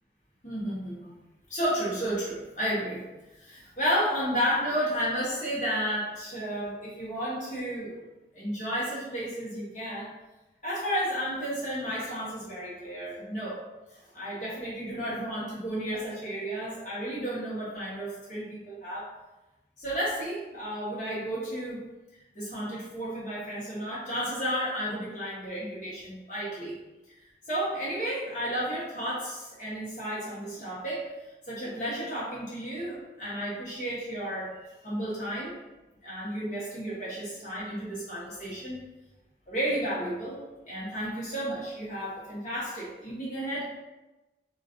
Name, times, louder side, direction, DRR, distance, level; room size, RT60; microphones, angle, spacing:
voice 1, 0.4-1.1 1.5-3.0 3.4-8.0 8.3-10.1 10.6-13.6 14.1-19.1 19.8-21.8 22.3-26.8 27.5-31.0 31.5-34.5 34.8-35.5 36.0-38.8 39.5-40.4 40.7-43.7, equal, 45° left, -8 dB, 0.9 m, -32 dB
2.5 x 2.4 x 2.4 m, 1.1 s
head